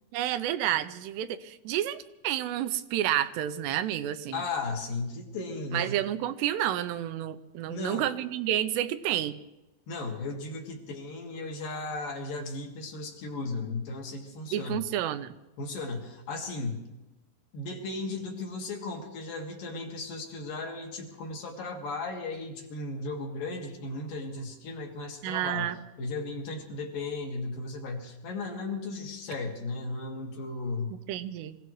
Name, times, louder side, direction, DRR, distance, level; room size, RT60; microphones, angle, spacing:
voice 1, 0.1-4.4 5.7-9.3 14.5-15.3 25.2-25.8 31.1-31.6, right 12 dB, 85° right, 12 dB, 2.8 m, -30 dB
voice 2, 4.3-6.0 7.7-8.1 9.9-14.8 15.6-16.8 17.5-25.7 26.0-30.9, left 3 dB, 60° left, 1 dB, 3.2 m, -35 dB
25.5 x 17.0 x 3.2 m, 0.98 s
omnidirectional pair, 4.9 m